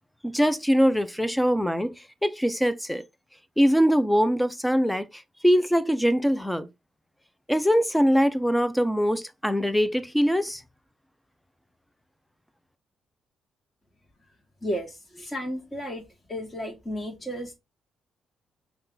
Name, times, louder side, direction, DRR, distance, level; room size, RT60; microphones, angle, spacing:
voice 1, 0.2-3.0 3.6-6.7 7.5-10.6, equal, 5° left, 0.5 m, -23 dB
voice 2, 14.6-16.0 16.3-17.5, equal, 20° left, 1.2 m, -33 dB
5.4 x 2.4 x 3.8 m
cardioid pair, 90°, 0 cm